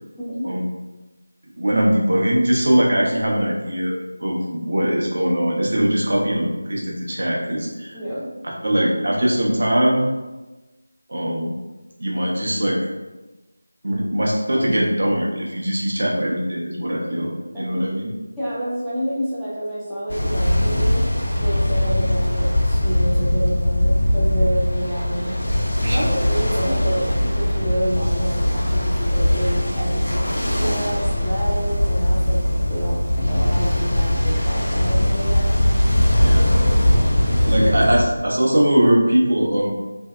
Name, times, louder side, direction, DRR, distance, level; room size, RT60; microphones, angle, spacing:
voice 1, 0.2-0.5 7.9-8.3 17.1-17.2 17.5-17.8 18.4-25.4 25.9-32.4 32.7-35.6 37.3-37.7, equal, ahead, -17 dB, 0.3 m, -28 dB
voice 2, 1.6-3.9 4.2-7.9 8.4-10.0 11.1-11.5 12.0-12.8 13.8-18.1 25.8-26.0 36.2-36.8 37.5-39.7, right 1 dB, 55° right, -2 dB, 0.6 m, -21 dB
Ocean, 20.1-38.0, left 1 dB, 70° left, 0.5 m, -20 dB
2.6 x 2.2 x 2.3 m, 1.1 s
figure-of-eight pair, 165°, 0 cm